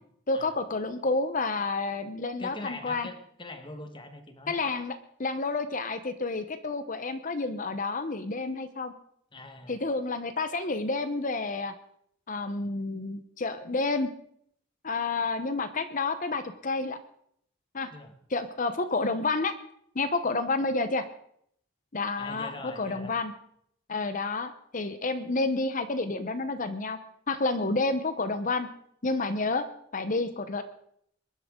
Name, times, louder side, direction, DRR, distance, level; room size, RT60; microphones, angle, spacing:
voice 1, 0.3-3.1 4.5-8.9 9.7-11.7 12.3-14.1 14.8-17.0 17.7-17.9 18.3-19.5 19.9-21.0 21.9-23.3 23.9-27.0 27.3-28.7 29.0-29.7 29.9-30.6, left 3 dB, 40° left, 10 dB, 0.9 m, -30 dB
voice 2, 2.4-4.6 9.3-9.8 17.9-18.2 22.2-23.1, left 2 dB, 25° left, 7 dB, 1.6 m, -42 dB
22.0 x 11.5 x 3.8 m, 0.67 s
head